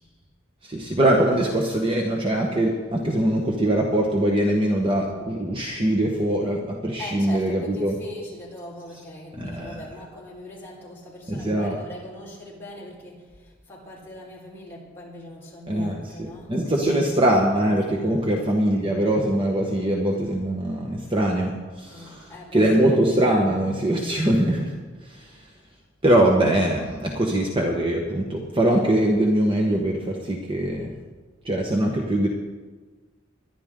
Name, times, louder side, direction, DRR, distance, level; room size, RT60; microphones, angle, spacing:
voice 1, 0.6-7.9 9.4-9.8 11.3-11.8 15.7-21.5 21.8-22.0 22.5-24.7 25.0-25.4 26.0-30.9 31.4-32.3, right 1 dB, 25° right, 0 dB, 1.3 m, -22 dB
voice 2, 7.0-17.4 18.0-18.3 21.9-23.0, left 1 dB, 10° left, -6 dB, 4.6 m, -41 dB
22.5 x 11.0 x 3.8 m, 1.4 s
head